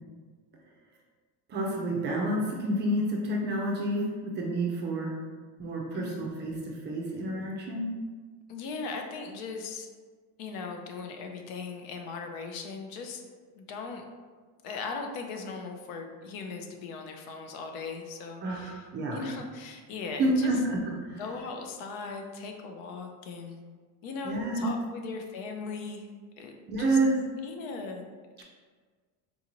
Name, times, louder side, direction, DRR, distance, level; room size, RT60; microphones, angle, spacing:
voice 1, 1.5-5.1 5.6-7.8 18.4-19.2 20.2-21.2 24.2-24.6 26.7-27.2 28.4-28.5, right 1 dB, 25° right, -1 dB, 0.4 m, -29 dB
voice 2, 8.5-9.9 10.4-13.2 13.6-14.0 14.6-18.8 19.1-20.6 21.2-23.6 24.0-26.5 26.8-27.0 27.4-28.1, left 4 dB, 80° left, 3 dB, 0.7 m, -38 dB
3.9 x 2.5 x 2.9 m, 1.5 s
cardioid pair, 155°, 41 cm